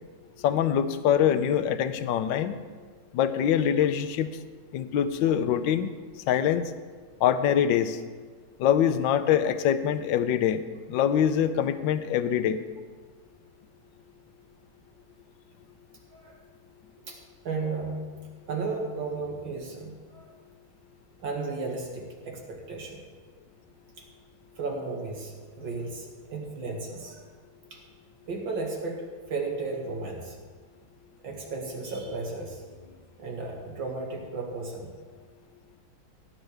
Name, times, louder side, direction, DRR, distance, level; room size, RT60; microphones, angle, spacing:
voice 1, 0.4-2.6 3.1-4.3 4.7-5.9 6.3-6.7 7.2-8.0 8.6-10.6 10.9-12.6, left 9 dB, 75° left, 11 dB, 1.3 m, -24 dB
voice 2, 17.0-18.1 18.5-20.3 21.2-23.0 24.0-24.1 24.6-27.2 27.7-27.8 28.3-30.4 31.2-32.9 33.2-35.2, right 3 dB, 75° right, -1 dB, 2.8 m, -34 dB
17.5 x 9.9 x 3.4 m, 1.5 s
omnidirectional pair, 2.1 m